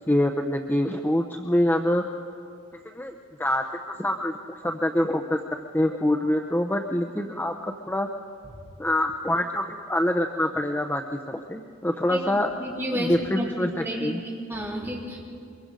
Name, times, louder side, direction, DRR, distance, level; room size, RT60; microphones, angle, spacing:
voice 1, 0.1-2.0 2.9-3.6 4.0-5.4 5.7-8.1 8.8-11.0 11.3-12.5 12.9-14.2, left 1 dB, 10° left, 3 dB, 0.7 m, -25 dB
voice 2, 12.1-15.3, equal, 15° right, -3 dB, 3.5 m, -31 dB
24.0 x 22.5 x 5.2 m, 2.4 s
head